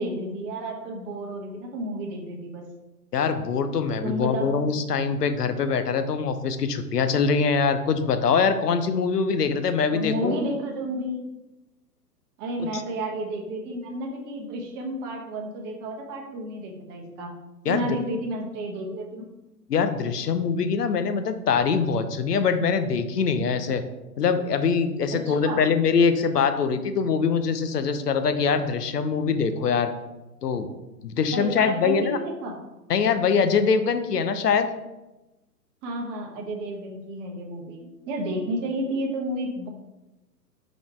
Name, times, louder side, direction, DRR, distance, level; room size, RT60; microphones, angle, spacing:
voice 1, 0.0-2.6 4.0-4.5 9.9-11.2 12.4-17.3 17.7-19.2 25.1-25.6 31.3-32.5 35.8-39.7, right 1 dB, 25° right, 1 dB, 1.1 m, -31 dB
voice 2, 3.1-10.4 12.6-12.8 17.6-17.9 19.7-23.8 24.2-29.9 30.4-30.7 31.0-32.2 32.9-34.7, left 5 dB, 70° left, 9 dB, 0.8 m, -23 dB
5.1 x 4.0 x 4.7 m, 1.0 s
figure-of-eight pair, 120°, 49 cm